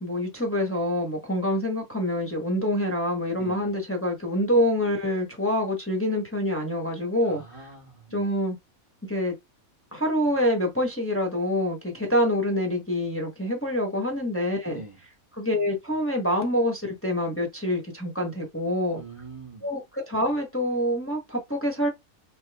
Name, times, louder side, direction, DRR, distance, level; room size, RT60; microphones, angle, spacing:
voice 1, 0.0-7.4 8.1-8.6 9.1-9.3 9.9-14.8 15.4-19.0 19.6-21.9, left 1 dB, 10° left, 0.9 m, -26 dB
voice 2, 3.4-3.7 7.2-8.3 14.7-15.0 18.9-19.7, right 3 dB, 30° right, 0.7 m, -44 dB
4.5 x 2.6 x 3.4 m
omnidirectional pair, 1.5 m